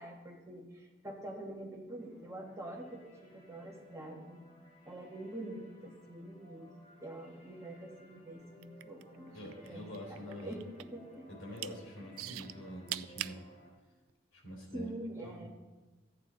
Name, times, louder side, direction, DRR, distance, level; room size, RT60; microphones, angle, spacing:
voice 1, 0.0-4.4 4.8-6.7 7.0-9.4 9.6-11.2 14.7-15.5, right 1 dB, 15° right, 0 dB, 1.3 m, -45 dB
sound 1, 2.0-13.7, left 1 dB, 30° left, 4.2 m, -60 dB
sound 2, 8.5-9.7 9.9-11.0 11.4-11.7 12.2-13.4 14.1-14.2, right 14 dB, 90° right, 0.3 m, -40 dB
voice 2, 9.3-10.6 11.4-13.4 14.3-14.9 15.2-15.5, equal, 85° left, -1 dB, 3.5 m, -46 dB
14.0 x 9.3 x 3.8 m, 1.2 s
head